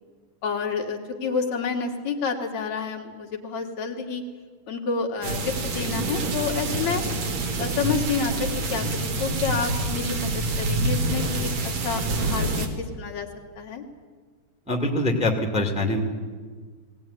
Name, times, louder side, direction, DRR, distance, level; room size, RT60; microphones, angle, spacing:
voice 1, 0.4-4.2 4.7-7.0 7.6-11.5 11.8-13.3 13.6-13.8, left 5 dB, 65° left, 1 dB, 3.0 m, -29 dB
sound 1, 5.2-12.7, right 2 dB, 60° right, 3.2 m, -27 dB
voice 2, 14.7-16.0, left 1 dB, 5° right, 2 dB, 1.9 m, -24 dB
20.0 x 17.5 x 9.9 m, 1.5 s
omnidirectional pair, 3.6 m